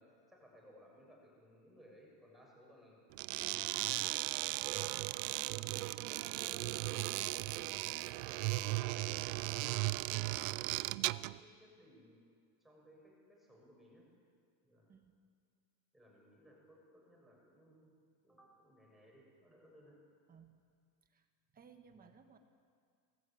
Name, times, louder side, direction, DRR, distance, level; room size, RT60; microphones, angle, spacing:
voice 1, 0.0-3.0 3.9-9.6 10.3-12.2 12.6-14.1 14.6-14.9 15.9-17.9 18.2-20.0, equal, ahead, -3 dB, 6.6 m, -61 dB
sound 1, 3.1-11.4, right 20 dB, 55° right, 0.6 m, -37 dB
voice 2, 20.3-20.6 21.0-21.3 21.5-22.4, right 6 dB, 15° right, 6 dB, 1.5 m, -61 dB
28.5 x 20.0 x 8.6 m, 2.1 s
cardioid pair, 170°, 49 cm